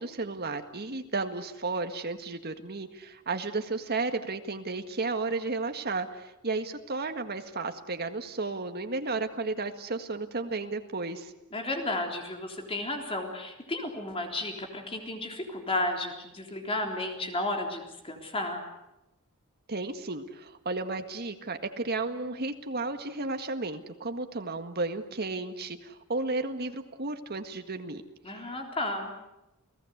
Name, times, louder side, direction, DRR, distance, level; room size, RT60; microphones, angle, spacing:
voice 1, 0.0-11.3 19.7-28.0, right 3 dB, 45° right, 7 dB, 1.8 m, -33 dB
voice 2, 11.5-18.6 28.2-29.1, left 2 dB, 25° left, 2 dB, 3.7 m, -33 dB
30.0 x 17.5 x 8.1 m, 0.94 s
head